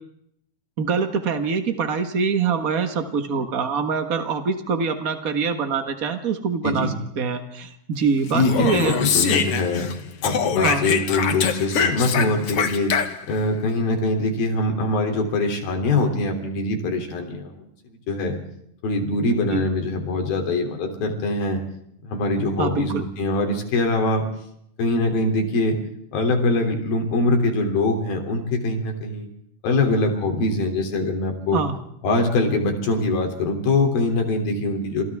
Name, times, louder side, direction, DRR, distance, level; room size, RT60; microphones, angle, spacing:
voice 1, 0.8-9.0 10.6-10.9 19.5-19.6 22.6-23.1 31.5-31.8, right 5 dB, 80° right, 7 dB, 0.7 m, -24 dB
voice 2, 8.3-12.9 13.3-17.5 18.1-18.4 18.8-21.6 22.0-24.2 24.8-25.8 26.1-29.3 29.6-31.6 32.0-35.0, left 2 dB, 80° left, 4 dB, 4.9 m, -23 dB
Speech, 8.3-9.9 10.2-13.4, left 7 dB, 55° left, 1.9 m, -23 dB
30.0 x 27.5 x 3.6 m, 0.74 s
omnidirectional pair, 4.1 m